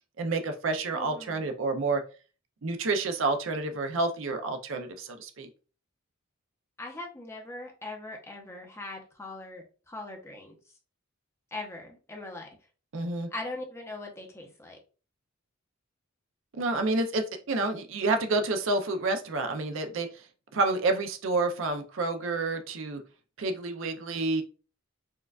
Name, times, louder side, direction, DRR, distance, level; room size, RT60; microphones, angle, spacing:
voice 1, 0.2-2.0 2.6-5.5 12.9-13.3 16.5-20.2 20.5-23.0 23.4-24.4, right 3 dB, 65° right, 6 dB, 0.5 m, -29 dB
voice 2, 0.9-1.5 6.8-10.5 11.5-12.5 13.3-14.8, left 2 dB, 10° left, 1 dB, 0.6 m, -40 dB
4.4 x 2.3 x 2.3 m, 0.35 s
head